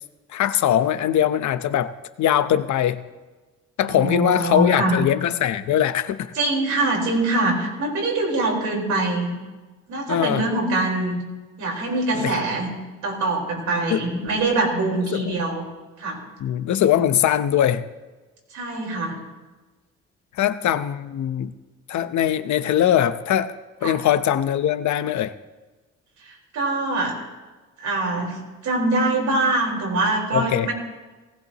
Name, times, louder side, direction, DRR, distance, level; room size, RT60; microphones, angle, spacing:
voice 1, 0.3-1.9 2.2-3.0 3.8-6.3 10.1-10.4 12.1-12.3 13.9-14.0 15.1-15.2 16.4-17.8 20.4-21.5 21.9-23.5 23.8-25.3 30.3-30.7, left 10 dB, 70° left, 12 dB, 0.8 m, -21 dB
voice 2, 3.8-5.0 6.3-9.3 9.9-11.2 11.6-12.7 13.0-15.7 16.0-16.2 18.5-19.2 23.8-24.0 26.2-27.2 27.8-30.7, right 2 dB, 75° right, -1 dB, 4.5 m, -24 dB
19.0 x 16.5 x 3.0 m, 1.2 s
cardioid pair, 90°, 30 cm